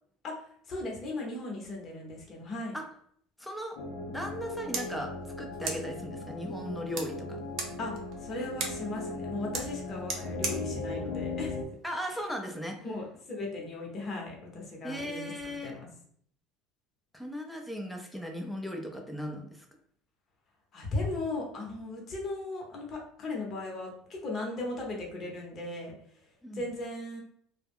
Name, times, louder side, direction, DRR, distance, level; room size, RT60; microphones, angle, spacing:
voice 1, 0.2-2.7 7.8-7.9 8.2-11.6 12.8-15.9 20.7-25.9 26.5-27.2, left 2 dB, 40° left, -1 dB, 0.9 m, -37 dB
voice 2, 3.4-3.8 4.1-5.1 5.4-7.4 11.8-12.8 14.8-15.7 17.1-19.7 26.4-26.7, equal, ahead, 2 dB, 0.5 m, -37 dB
sound 1, 3.8-11.6, left 2 dB, 70° left, 0.4 m, -38 dB
sound 2, 4.3-12.3, right 4 dB, 55° right, 0.6 m, -41 dB
2.2 x 2.0 x 3.4 m, 0.64 s
hypercardioid pair, 85°, 0 cm